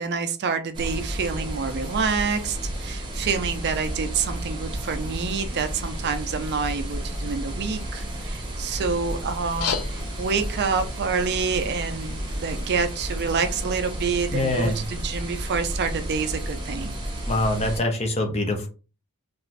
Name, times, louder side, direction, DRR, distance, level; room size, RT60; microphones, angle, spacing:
voice 1, 0.0-17.0, right 5 dB, 50° right, 8 dB, 0.4 m, -27 dB
sound 1, 0.7-17.8, right 1 dB, 20° right, 0.8 m, -32 dB
sound 2, 9.4-14.4, left 7 dB, 85° left, 0.5 m, -37 dB
voice 2, 14.3-14.8 17.3-18.7, left 2 dB, 30° left, 4 dB, 0.5 m, -24 dB
2.5 x 2.4 x 3.1 m, 0.33 s
head